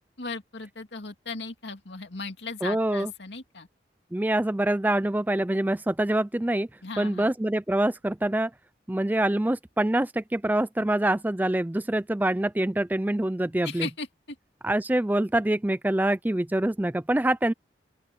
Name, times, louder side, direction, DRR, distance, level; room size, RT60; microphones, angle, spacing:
voice 1, 0.2-3.7 6.8-7.3 13.6-14.4, left 4 dB, 85° left, 2.5 m, -37 dB
voice 2, 2.6-3.1 4.1-6.7 7.0-8.5 8.9-13.9 14.6-17.5, right 1 dB, 10° right, 0.4 m, -25 dB
open air
head